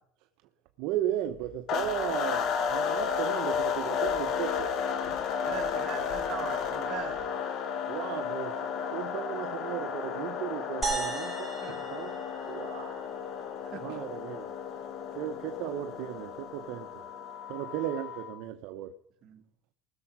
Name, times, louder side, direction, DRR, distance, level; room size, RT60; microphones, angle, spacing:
voice 1, 0.8-4.7 7.9-11.6 11.9-13.1 13.8-14.5 15.1-17.1 17.5-18.9, right 12 dB, 65° right, 0.9 m, -36 dB
Walk footsteps, 1.2-7.3, left 2 dB, 90° left, 7.4 m, -53 dB
sound 1, 1.7-18.4, left 7 dB, 45° left, 1.4 m, -33 dB
voice 2, 5.4-7.2 11.6-11.8 13.6-13.9 19.2-19.4, right 8 dB, 45° right, 2.4 m, -40 dB
sound 2, 10.8-13.3, right 4 dB, ahead, 5.9 m, -36 dB
19.5 x 6.9 x 6.1 m
cardioid pair, 145°, 0 cm